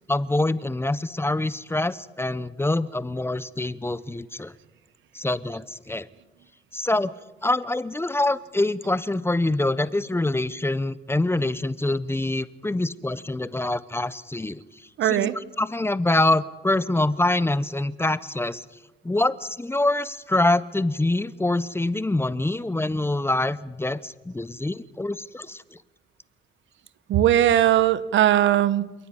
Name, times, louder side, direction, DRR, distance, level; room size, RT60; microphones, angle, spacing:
voice 1, 0.1-4.5 5.1-6.1 6.7-7.1 7.4-14.6 15.0-15.3 15.6-18.6 19.0-25.8, left 2 dB, 10° left, 17 dB, 0.7 m, -25 dB
voice 2, 15.0-15.4 27.1-28.9, right 12 dB, 70° right, 16 dB, 1.0 m, -19 dB
28.0 x 10.0 x 9.7 m, 1.1 s
cardioid pair, 90°, 20 cm